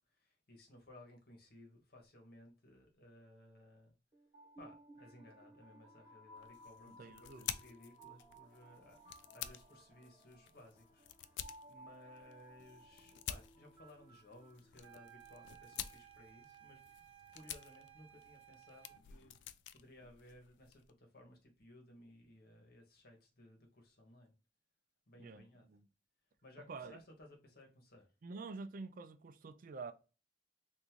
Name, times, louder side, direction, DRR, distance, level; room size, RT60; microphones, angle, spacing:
voice 1, 0.1-3.9 4.6-16.8 17.3-24.3 25.1-25.7 26.4-28.1, left 1 dB, 60° left, 1.2 m, -60 dB
sound 1, 4.1-15.2, right 1 dB, 30° right, 1.4 m, -60 dB
sound 2, 6.4-20.9, left 11 dB, 85° left, 0.3 m, -50 dB
voice 2, 6.9-7.6 25.2-25.9 26.7-27.0 28.2-29.9, right 4 dB, 50° right, 0.4 m, -48 dB
sound 3, 14.8-19.1, right 12 dB, 90° right, 0.7 m, -59 dB
3.6 x 2.6 x 2.9 m
head